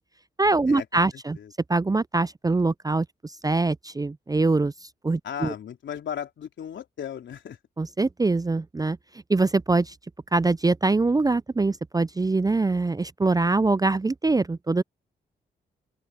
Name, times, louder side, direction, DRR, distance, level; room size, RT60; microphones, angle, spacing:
voice 1, 0.4-1.4 1.7-5.5 7.8-9.0 9.3-9.9 10.3-14.8, right 3 dB, 20° right, 0.5 m, -23 dB
voice 2, 1.1-1.5 5.2-7.6, left 8 dB, 70° left, 3.8 m, -36 dB
open air
hypercardioid pair, 40°, 20 cm